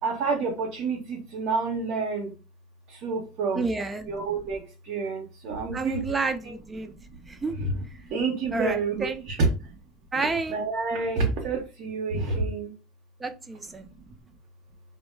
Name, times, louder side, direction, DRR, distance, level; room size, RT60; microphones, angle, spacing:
voice 1, 0.0-2.3 2.9-3.7 4.1-6.0 6.4-9.8 10.1-12.7 13.7-14.1, right 4 dB, 60° right, -1 dB, 0.7 m, -29 dB
voice 2, 3.6-4.1 5.7-6.9 7.3-7.6 8.5-9.2 10.1-10.6 13.2-13.9, right 3 dB, 15° right, 7 dB, 0.3 m, -30 dB
2.1 x 2.0 x 3.2 m, 0.31 s
supercardioid pair, 120°, 0 cm